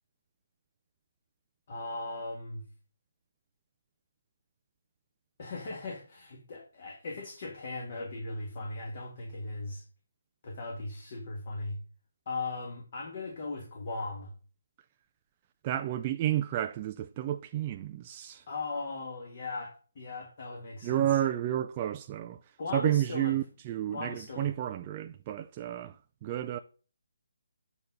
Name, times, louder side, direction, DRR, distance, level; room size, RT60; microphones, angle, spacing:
voice 1, 1.7-2.6 5.4-9.8 10.4-11.8 12.3-14.3 18.5-21.2 22.6-23.4 23.9-24.5, left 3 dB, 35° left, 1.7 m, -38 dB
voice 2, 15.6-18.4 20.8-22.4 22.7-26.0 26.2-26.6, right 12 dB, 20° right, 0.3 m, -31 dB
8.6 x 4.1 x 5.8 m
hypercardioid pair, 170°, 0 cm